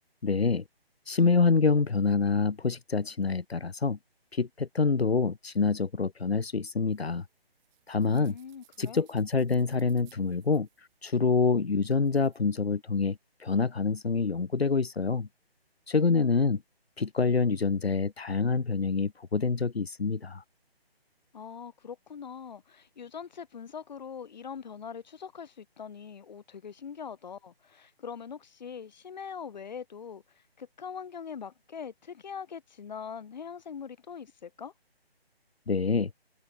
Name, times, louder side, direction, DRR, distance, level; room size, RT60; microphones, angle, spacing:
voice 1, 0.2-0.6 1.1-4.0 4.3-7.2 7.9-8.4 8.8-15.3 15.9-16.6 17.0-20.4 35.7-36.1, left 4 dB, 80° left, 1.9 m, -26 dB
sound 1, 6.9-12.4, right 28 dB, 15° right, 7.2 m, -65 dB
voice 2, 8.1-9.1 21.3-34.7, left 7 dB, 45° left, 5.9 m, -42 dB
figure-of-eight pair, 160°, 31 cm